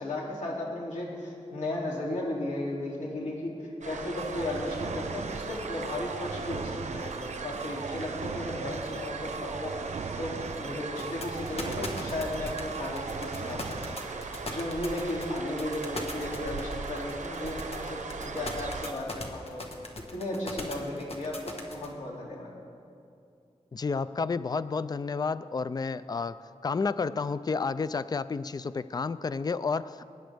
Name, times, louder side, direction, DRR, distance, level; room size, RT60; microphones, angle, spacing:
voice 1, 0.0-9.8 10.2-14.0 14.4-19.6 20.1-22.5, left 1 dB, 80° left, -4 dB, 2.6 m, -35 dB
sound 1, 3.8-18.9, right 4 dB, 80° right, 0.8 m, -39 dB
sound 2, 4.2-14.0, right 5 dB, 60° right, 0.4 m, -40 dB
sound 3, 11.0-21.9, left 2 dB, 55° left, 1.5 m, -39 dB
voice 2, 23.7-26.4 26.6-30.0, left 4 dB, 35° left, 15 dB, 0.3 m, -30 dB
23.0 x 10.0 x 3.4 m, 2.5 s
wide cardioid pair, 85°, 12 cm